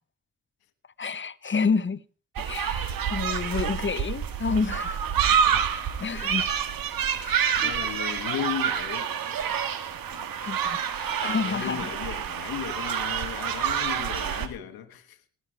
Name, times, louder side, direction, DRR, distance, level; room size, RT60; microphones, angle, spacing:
voice 1, 1.0-2.0 2.4-5.0 5.4-6.5 7.1-8.0 10.4-11.8, left 5 dB, 35° left, 1.0 m, -30 dB
sound 1, 2.4-14.5, right 8 dB, 70° right, 1.5 m, -28 dB
voice 2, 5.2-5.6 6.0-6.1 7.6-9.4 10.1-10.3 11.2-15.2, left 10 dB, 80° left, 1.4 m, -36 dB
19.5 x 6.7 x 4.8 m
supercardioid pair, 40°, 36 cm